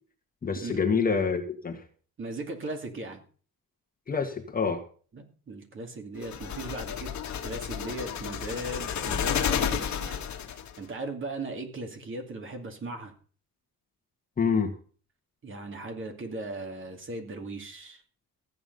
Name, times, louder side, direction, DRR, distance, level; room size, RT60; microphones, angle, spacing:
voice 1, 0.4-1.8 4.1-4.8 14.4-14.7, left 5 dB, 25° left, 2 dB, 2.0 m, -27 dB
voice 2, 2.2-3.2 5.1-7.1 7.4-10.2 10.5-13.1 15.4-18.0, right 2 dB, 35° right, 4 dB, 2.6 m, -38 dB
sound 1, 6.2-10.8, left 8 dB, 50° left, 1.9 m, -31 dB
15.0 x 8.9 x 5.5 m, 0.41 s
cardioid pair, 155°, 36 cm